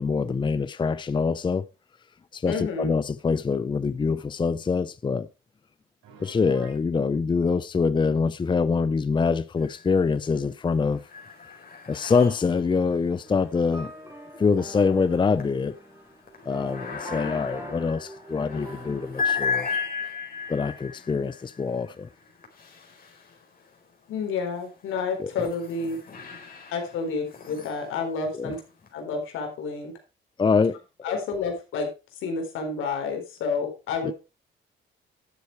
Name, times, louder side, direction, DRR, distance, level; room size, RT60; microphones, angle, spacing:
voice 1, 0.0-1.7 2.3-5.3 6.2-11.1 11.9-13.9 14.3-15.8 16.5-19.7 20.5-22.1 25.2-25.3 28.3-28.5 30.4-30.8 31.1-31.2 34.0-34.1, left 5 dB, 25° left, 0.6 m, -25 dB
voice 2, 2.5-2.9 24.1-26.0 26.7-28.6 28.9-29.9 31.0-31.9 32.2-34.1, left 4 dB, 85° left, 4.1 m, -29 dB
Piano, 6.0-6.9, right 5 dB, 85° right, 4.9 m, -49 dB
sound 1, 9.6-10.3 10.6-23.8 24.4-28.9, left 6 dB, 45° left, 4.4 m, -36 dB
sound 2, 13.2-19.2, right 1 dB, 15° right, 4.3 m, -44 dB
12.0 x 8.0 x 4.6 m
cardioid pair, 90°, 20 cm